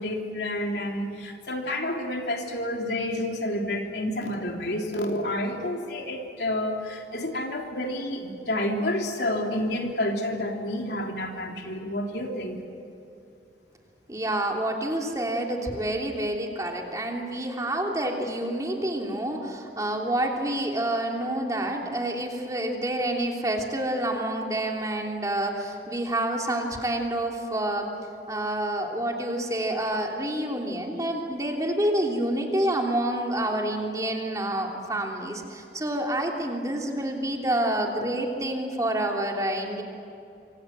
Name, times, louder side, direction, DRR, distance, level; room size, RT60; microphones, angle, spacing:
voice 1, 0.0-12.6 38.0-38.1, left 1 dB, 70° left, 1 dB, 3.4 m, -29 dB
voice 2, 14.1-27.9 28.3-39.8, right 1 dB, 20° right, 1 dB, 3.2 m, -28 dB
27.0 x 25.5 x 7.6 m, 2.7 s
head